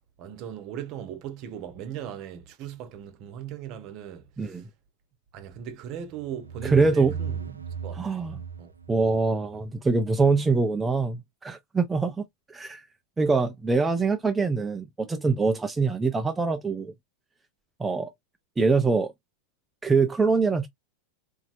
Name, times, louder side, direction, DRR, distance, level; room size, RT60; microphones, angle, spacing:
voice 1, 0.2-4.7 5.3-8.7, right 9 dB, 40° right, 0.9 m, -38 dB
sound 1, 6.1-9.8, right 7 dB, 80° right, 0.6 m, -37 dB
voice 2, 6.6-7.2 8.0-8.4 8.9-12.8 13.2-16.9 17.8-18.1 18.6-19.1 19.8-20.7, right 4 dB, 10° right, 0.5 m, -24 dB
4.1 x 2.8 x 2.5 m
figure-of-eight pair, 90°, 0 cm